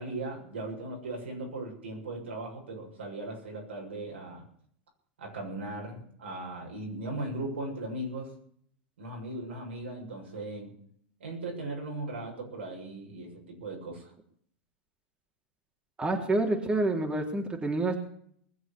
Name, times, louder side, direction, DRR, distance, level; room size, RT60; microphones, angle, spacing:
voice 1, 0.0-4.4 5.2-8.3 9.0-10.7 11.2-14.1, right 2 dB, 85° right, 1 dB, 7.1 m, -38 dB
voice 2, 16.0-18.0, right 2 dB, 15° right, 2 dB, 3.4 m, -28 dB
20.5 x 7.8 x 8.4 m, 0.62 s
hypercardioid pair, 110°, 6 cm